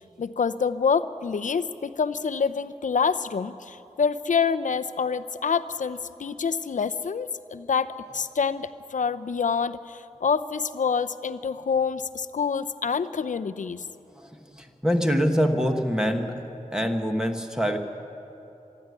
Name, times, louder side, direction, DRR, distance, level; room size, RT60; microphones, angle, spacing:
voice 1, 0.2-13.9, left 6 dB, 70° left, 11 dB, 0.7 m, -27 dB
voice 2, 14.1-16.4 16.7-17.8, equal, 5° right, 4 dB, 1.5 m, -25 dB
25.5 x 11.0 x 9.7 m, 3.0 s
wide cardioid pair, 110°, 14 cm